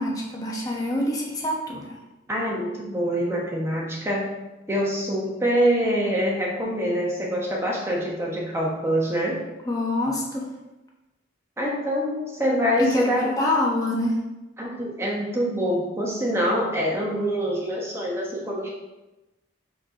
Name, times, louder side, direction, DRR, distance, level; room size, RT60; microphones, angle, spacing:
voice 1, 0.0-1.9 9.6-10.5 12.8-14.2, left 1 dB, 20° left, -2 dB, 1.0 m, -25 dB
voice 2, 2.3-4.2 4.7-9.4 11.6-13.2 14.6-18.7, equal, 15° right, -3 dB, 1.1 m, -25 dB
4.6 x 4.2 x 5.2 m, 1.0 s
head